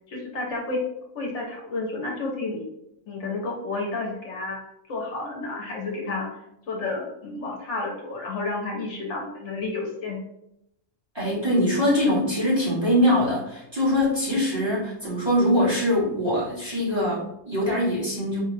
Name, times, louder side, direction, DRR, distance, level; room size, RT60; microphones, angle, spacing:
voice 1, 0.1-0.8 1.1-2.7 3.1-4.6 4.9-6.3 6.7-10.2, left 3 dB, 65° left, -1 dB, 1.0 m, -31 dB
voice 2, 11.1-18.4, left 1 dB, 20° right, -8 dB, 1.4 m, -23 dB
4.3 x 2.3 x 3.2 m, 0.82 s
omnidirectional pair, 1.4 m